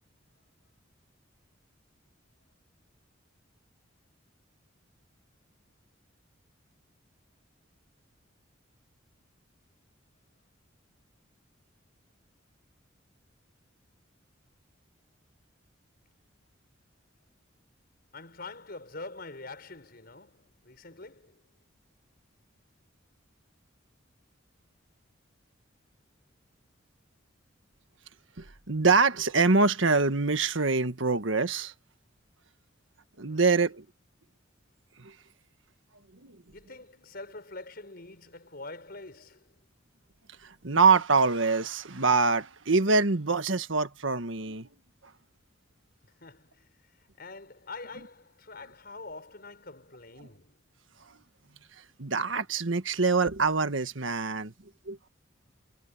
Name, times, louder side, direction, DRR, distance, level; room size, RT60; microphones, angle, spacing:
voice 1, 18.1-21.4 33.3-33.6 36.5-39.5 46.0-50.6, left 3 dB, 55° left, 5.4 m, -45 dB
voice 2, 28.4-31.7 33.2-33.8 35.0-35.1 36.2-36.4 40.4-44.7 52.0-54.5 54.9-55.0, right 4 dB, 80° right, 1.6 m, -25 dB
head